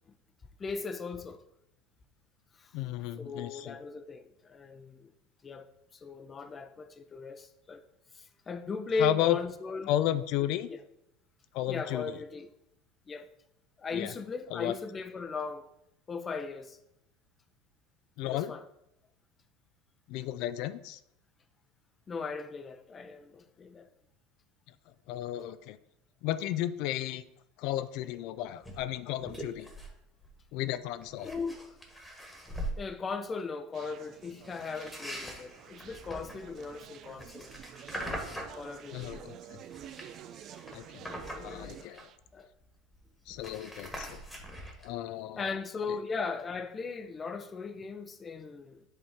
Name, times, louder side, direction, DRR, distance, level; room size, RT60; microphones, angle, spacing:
voice 1, 0.6-1.4 2.6-2.7 3.2-5.1 5.4-5.7 6.0-7.8 8.1-9.9 10.7-10.8 11.7-12.5 13.1-13.3 13.8-15.7 16.1-16.8 18.2-18.6 22.1-23.9 31.2-31.7 32.8-37.5 38.5-39.1 41.4-41.9 42.3-42.5 43.9-44.0 45.4-48.8, left 4 dB, 25° left, 0.7 m, -38 dB
voice 2, 2.7-3.8 9.0-9.4 9.8-10.7 11.5-12.2 13.9-14.1 14.5-14.8 18.2-18.5 20.1-21.0 25.1-25.8 26.2-27.2 27.6-29.7 30.5-31.3 38.9-39.6 40.7-41.0 41.4-42.0 43.3-44.2 44.8-45.5, left 13 dB, 65° left, 0.4 m, -33 dB
sound 1, 28.6-28.8 29.2-30.0 30.2-30.5 31.0-32.8 34.4-39.2 39.6-42.3 42.6-42.7 42.9-44.9, equal, 10° left, 1.5 m, -42 dB
Conversation, 33.7-42.2, right 10 dB, 50° right, 0.4 m, -50 dB
7.9 x 3.5 x 4.3 m
supercardioid pair, 105°, 0 cm